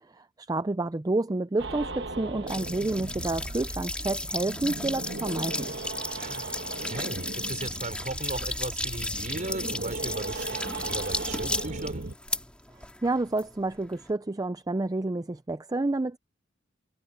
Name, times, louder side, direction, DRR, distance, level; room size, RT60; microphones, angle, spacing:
voice 1, 0.1-5.7 13.0-16.2, right 2 dB, 20° right, 0.5 m, -29 dB
sound 1, 1.6-12.1, right 2 dB, 65° right, 1.4 m, -37 dB
sound 2, 2.5-14.1, left 2 dB, 5° left, 2.0 m, -35 dB
sound 3, 3.6-9.1 9.4-12.4, left 5 dB, 35° left, 6.4 m, -58 dB
voice 2, 6.2-12.1, right 2 dB, 45° right, 3.9 m, -37 dB
head